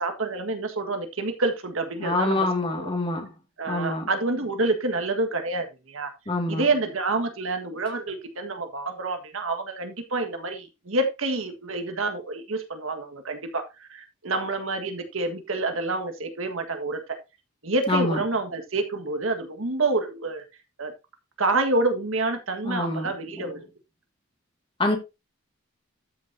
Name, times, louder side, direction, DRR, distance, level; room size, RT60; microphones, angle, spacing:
voice 1, 0.0-2.4 2.8-2.9 3.6-6.1 6.5-17.0 17.6-20.4 20.8-20.9 21.4-23.7, right 2 dB, 80° right, 1.7 m, -28 dB
voice 2, 2.0-3.3 3.7-4.1 6.3-6.7 17.9-18.2 22.6-23.5 24.8-25.0, left 2 dB, 25° left, 2.1 m, -26 dB
13.0 x 6.3 x 2.8 m
head